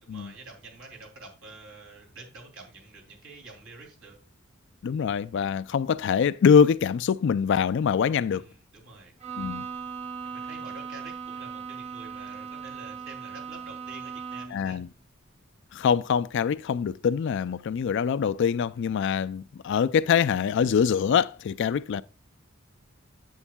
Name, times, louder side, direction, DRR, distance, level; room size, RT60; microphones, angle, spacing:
voice 1, 0.0-4.2 8.3-9.1 10.2-14.8, right 3 dB, 70° right, 2.9 m, -47 dB
voice 2, 4.8-8.5 9.4-9.7 14.5-14.9 15.7-22.0, left 7 dB, 60° left, 0.3 m, -24 dB
Bowed string instrument, 9.2-14.7, right 6 dB, 30° right, 0.6 m, -38 dB
9.8 x 8.0 x 2.2 m
head